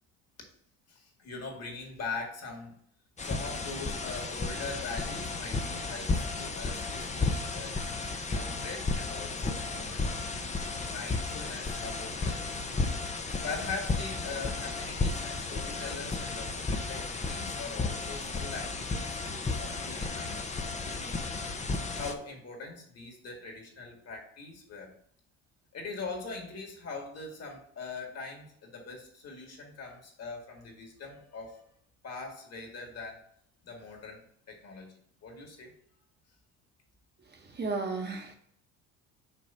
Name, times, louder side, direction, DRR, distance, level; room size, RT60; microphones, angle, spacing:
voice 1, 0.9-2.8 3.2-7.8 8.3-9.9 10.8-12.9 13.4-20.4 20.9-21.4 21.9-24.9 25.7-31.6 32.0-33.2 33.6-34.9 35.2-35.7, left 4 dB, 45° left, 2 dB, 2.1 m, -42 dB
sound 1, 3.2-22.1, left 3 dB, 20° left, 0.7 m, -33 dB
voice 2, 37.3-38.3, right 3 dB, 30° right, 3 dB, 1.2 m, -34 dB
5.4 x 3.2 x 5.5 m, 0.65 s
supercardioid pair, 85°, 34 cm